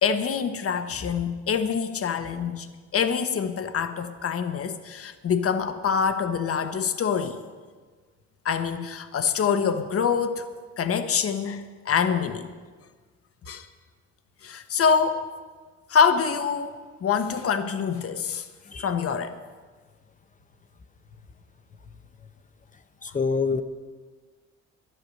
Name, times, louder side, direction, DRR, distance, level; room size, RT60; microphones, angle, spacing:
voice 1, 0.0-2.7 2.9-7.4 8.4-10.4 10.8-12.5 13.5-13.7 14.4-15.2 15.9-18.5 18.8-19.4, left 6 dB, 50° left, 9 dB, 1.1 m, -25 dB
voice 2, 23.0-23.6, left 5 dB, 25° left, 10 dB, 0.7 m, -26 dB
12.0 x 11.0 x 6.5 m, 1.5 s
cardioid pair, 90°, 30 cm